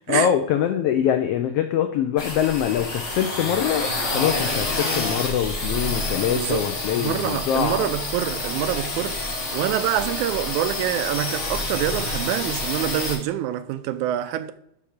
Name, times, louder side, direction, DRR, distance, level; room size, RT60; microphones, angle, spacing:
voice 1, 0.1-7.9, left 10 dB, 85° left, 1.3 m, -24 dB
sound 1, 2.2-13.2, left 2 dB, 30° left, 1.4 m, -28 dB
voice 2, 7.0-14.5, right 12 dB, 85° right, 2.0 m, -26 dB
10.0 x 3.4 x 6.4 m
omnidirectional pair, 3.4 m